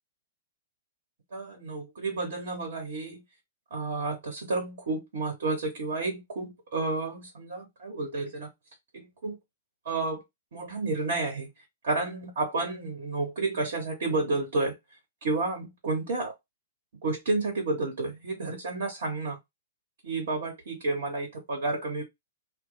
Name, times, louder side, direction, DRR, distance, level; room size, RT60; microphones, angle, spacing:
voice 1, 1.3-3.2 3.7-8.5 8.9-9.4 9.8-10.2 10.5-11.5 11.8-14.8 15.2-16.3 17.0-19.4 20.0-22.0, right 3 dB, 70° right, 1.2 m, -31 dB
2.2 x 2.1 x 3.8 m
hypercardioid pair, 120°, 0 cm